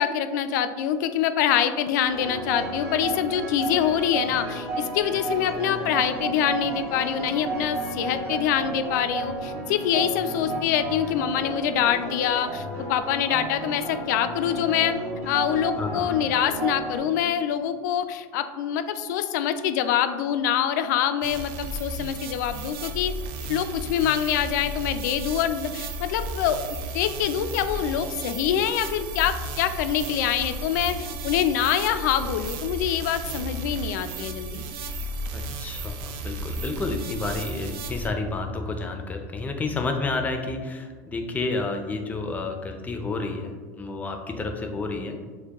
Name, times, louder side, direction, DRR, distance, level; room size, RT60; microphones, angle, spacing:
voice 1, 0.0-15.0 15.3-23.2 23.5-34.6, left 9 dB, 80° left, 10 dB, 0.3 m, -25 dB
sound 1, 2.1-17.0, right 2 dB, 30° right, 1.5 m, -32 dB
voice 2, 15.8-16.2 35.3-45.2, left 3 dB, 15° left, 4 dB, 0.5 m, -30 dB
sound 2, 21.2-38.1, right 2 dB, 55° right, 0.4 m, -34 dB
6.5 x 2.2 x 2.9 m, 1.5 s
supercardioid pair, 125°, 10 cm